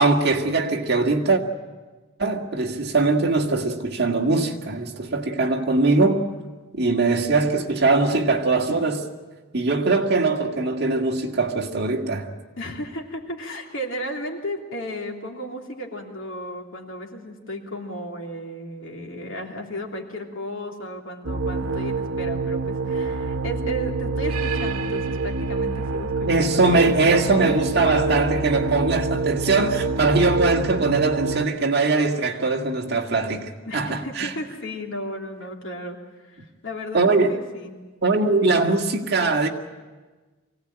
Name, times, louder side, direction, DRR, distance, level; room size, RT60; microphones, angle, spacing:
voice 1, 0.0-1.4 2.2-6.2 6.7-9.1 9.5-12.3 26.3-34.3 36.9-37.4 38.0-39.5, right 3 dB, 50° right, 2.0 m, -21 dB
voice 2, 12.6-27.6 28.4-28.5 33.6-37.7, equal, 65° left, 3.2 m, -34 dB
sound 1, 21.2-31.4, right 3 dB, 85° right, 0.8 m, -26 dB
24.5 x 17.5 x 8.9 m
head